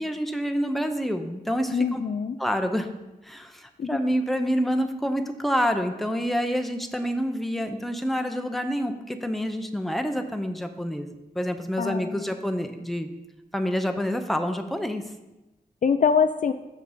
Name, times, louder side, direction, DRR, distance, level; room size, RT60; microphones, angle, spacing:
voice 1, 0.0-2.0 2.4-2.9 3.2-13.1 13.5-15.0, equal, ahead, 6 dB, 0.7 m, -27 dB
voice 2, 1.7-2.4 3.8-3.9 11.8-12.3 15.8-16.5, left 6 dB, 55° left, 9 dB, 0.4 m, -24 dB
6.7 x 5.8 x 5.1 m, 1.0 s
wide cardioid pair, 75°, 16 cm